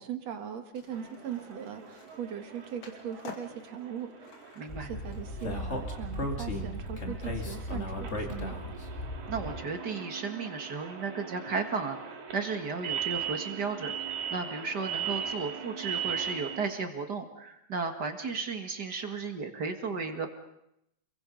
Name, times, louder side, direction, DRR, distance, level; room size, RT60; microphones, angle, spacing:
voice 1, 0.0-4.3 4.6-8.6, right 8 dB, 60° right, 6 dB, 2.8 m, -40 dB
Skateboard, 0.7-6.0, left 4 dB, 50° left, 3.5 m, -51 dB
sound 1, 0.9-16.6, right 8 dB, 90° right, 4.1 m, -39 dB
voice 2, 4.6-4.9 9.3-20.3, right 4 dB, 40° right, 5 dB, 1.9 m, -34 dB
Speech, 4.7-9.6, left 1 dB, 25° left, 2.2 m, -36 dB
29.5 x 22.5 x 5.3 m, 0.80 s
omnidirectional pair, 3.4 m